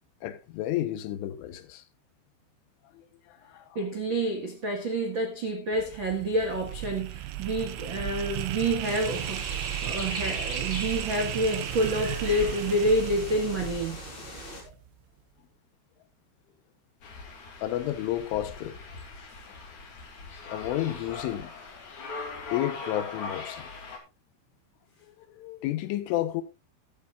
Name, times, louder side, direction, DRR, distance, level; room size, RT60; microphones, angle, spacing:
voice 1, 0.2-1.8 2.9-3.8 14.7-14.8 17.6-18.8 19.5-19.6 20.5-21.5 22.5-23.7 25.1-26.4, left 13 dB, 85° left, 3.6 m, -32 dB
voice 2, 3.7-14.0, right 1 dB, 70° right, 1.1 m, -28 dB
sound 1, 5.7-14.9, right 12 dB, 90° right, 3.7 m, -35 dB
sound 2, 8.8-14.6, left 2 dB, 30° left, 4.3 m, -40 dB
sound 3, 17.0-24.0, left 4 dB, 45° left, 3.8 m, -40 dB
14.5 x 13.0 x 2.5 m
omnidirectional pair, 5.5 m